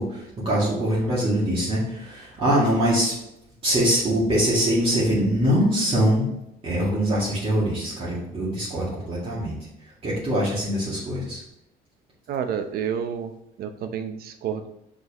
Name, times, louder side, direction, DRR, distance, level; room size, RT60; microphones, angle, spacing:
voice 1, 0.0-3.2 3.6-6.3 6.6-9.6 10.0-11.4, equal, 35° right, -8 dB, 2.3 m, -23 dB
voice 2, 12.3-13.3 13.6-14.7, right 8 dB, 65° right, 8 dB, 0.7 m, -29 dB
6.2 x 5.2 x 3.0 m, 0.83 s
cardioid pair, 110°, 17 cm